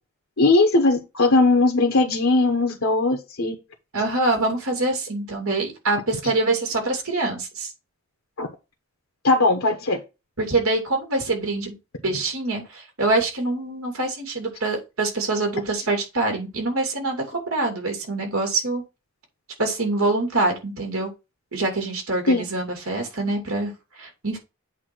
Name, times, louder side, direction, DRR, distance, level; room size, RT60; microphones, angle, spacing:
voice 1, 0.4-3.5 8.4-8.5 9.2-10.0 22.3-22.4, left 2 dB, 65° left, 3 dB, 1.1 m, -19 dB
voice 2, 3.9-7.7 10.4-11.8 12.0-18.8 19.6-21.1 21.5-23.7 24.0-24.4, right 2 dB, 85° right, 2 dB, 2.9 m, -25 dB
8.2 x 2.9 x 6.0 m, 0.27 s
head